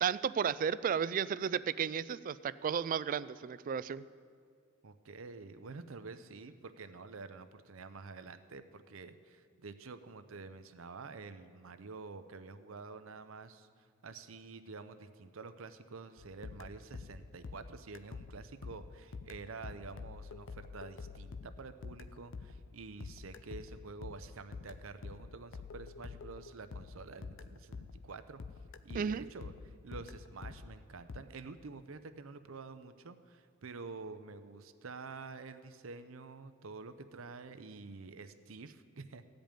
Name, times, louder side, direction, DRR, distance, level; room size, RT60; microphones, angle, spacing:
voice 1, 0.0-4.0 28.9-29.3, right 7 dB, 40° right, 16 dB, 0.3 m, -33 dB
voice 2, 4.8-13.7 14.0-28.4 28.8-39.2, right 4 dB, 75° right, 11 dB, 0.7 m, -48 dB
sound 1, 16.2-28.1 28.4-31.2, left 4 dB, 65° left, 0.5 m, -47 dB
15.5 x 5.2 x 9.0 m, 2.1 s
head